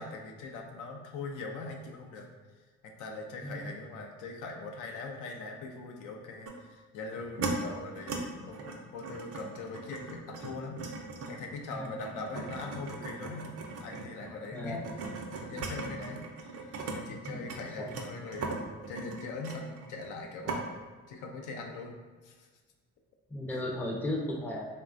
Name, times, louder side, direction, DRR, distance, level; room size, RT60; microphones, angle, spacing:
voice 1, 0.0-2.3 2.8-10.9 11.3-13.5 13.8-14.8 15.4-16.5 16.9-20.7 21.1-21.9 22.2-22.5 23.5-23.6, left 3 dB, 85° left, 2 dB, 0.5 m, -41 dB
voice 2, 3.4-3.7 11.7-11.9 14.5-14.8 17.3-17.5 17.8-17.9 23.3-24.7, left 1 dB, 5° left, -2 dB, 0.4 m, -35 dB
sound 1, 6.5-6.6 7.1-7.5 7.9-8.2 8.5-17.0 17.2-20.2 20.5-20.6, right 4 dB, 55° right, 0.5 m, -39 dB
3.1 x 2.2 x 2.4 m, 1.4 s
cardioid pair, 90°, 30 cm